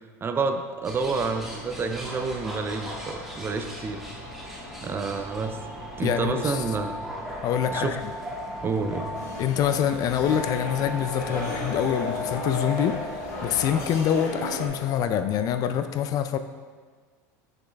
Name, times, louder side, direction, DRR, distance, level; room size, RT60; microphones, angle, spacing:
voice 1, 0.2-4.0 4.8-5.6 6.0-7.0 7.7-8.0 8.6-9.1, right 4 dB, 25° right, 7 dB, 0.5 m, -29 dB
sound 1, 0.8-15.6, left 2 dB, 30° left, 1.3 m, -39 dB
sound 2, 0.8-14.0, equal, 5° right, 1.4 m, -40 dB
voice 2, 6.0-6.6 7.4-8.1 9.4-13.0 13.4-16.4, left 9 dB, 45° left, 10 dB, 0.4 m, -25 dB
sound 3, 9.1-14.7, left 1 dB, 90° left, 1.4 m, -36 dB
6.2 x 5.2 x 3.4 m, 1.5 s
supercardioid pair, 105°, 9 cm